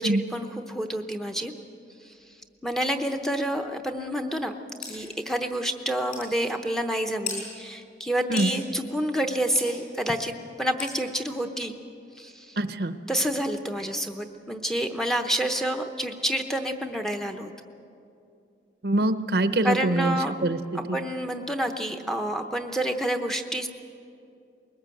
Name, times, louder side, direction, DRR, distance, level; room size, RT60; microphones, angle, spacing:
voice 1, 0.0-1.5 2.1-2.2 2.6-10.3 10.6-11.8 12.2-12.6 13.1-17.5 19.6-20.3 20.7-23.7, right 1 dB, 5° left, 5 dB, 0.8 m, -28 dB
sound 1, 4.8-5.0 5.5-5.6 6.1-6.3 7.3-7.4 8.4-8.5 9.6-9.7 10.8-11.0, left 6 dB, 45° left, 7.0 m, -34 dB
voice 2, 12.6-12.9 18.8-21.0, right 1 dB, 60° right, 11 dB, 0.8 m, -25 dB
21.5 x 19.0 x 7.7 m, 2.6 s
head